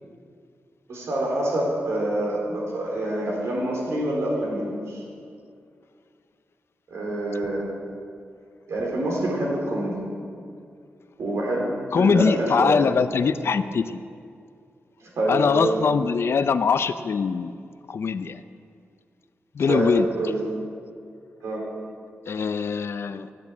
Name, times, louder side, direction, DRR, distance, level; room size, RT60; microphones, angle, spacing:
voice 1, 0.9-5.0 6.9-7.6 8.7-10.0 11.2-12.8 15.0-15.8 19.7-20.4 21.4-21.8, right 1 dB, 80° right, -2 dB, 4.1 m, -26 dB
voice 2, 11.9-14.0 15.3-17.5 17.9-18.4 19.5-20.1 22.3-23.3, left 5 dB, 60° left, 12 dB, 0.6 m, -22 dB
11.0 x 10.5 x 8.5 m, 2.3 s
wide cardioid pair, 115°, 5 cm